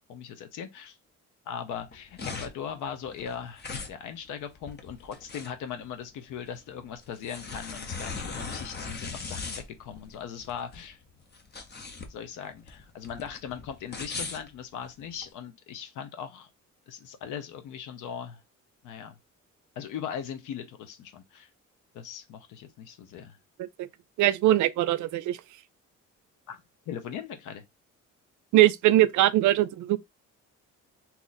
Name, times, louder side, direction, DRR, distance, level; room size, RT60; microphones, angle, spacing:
voice 1, 0.1-1.0 1.5-11.0 12.0-16.5 16.9-18.4 18.8-19.2 19.8-21.5 21.9-23.4 26.5-27.6, left 8 dB, 90° left, 0.8 m, -39 dB
sound 1, 1.8-15.3, left 4 dB, 35° left, 0.8 m, -39 dB
voice 2, 24.2-25.4 28.5-30.0, right 14 dB, 75° right, 0.5 m, -22 dB
2.9 x 2.5 x 4.0 m
cardioid pair, 90°, 30 cm